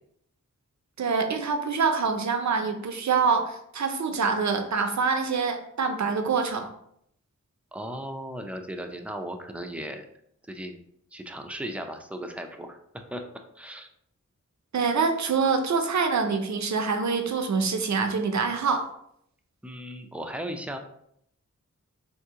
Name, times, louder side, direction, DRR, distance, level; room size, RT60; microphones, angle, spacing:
voice 1, 1.0-6.7 14.7-18.9, right 5 dB, 60° right, 6 dB, 0.6 m, -25 dB
voice 2, 7.7-10.0 10.5-10.8 11.1-13.2 13.6-13.9 19.6-20.8, equal, 5° right, 5 dB, 0.4 m, -36 dB
2.8 x 2.6 x 3.6 m, 0.72 s
cardioid pair, 50°, 32 cm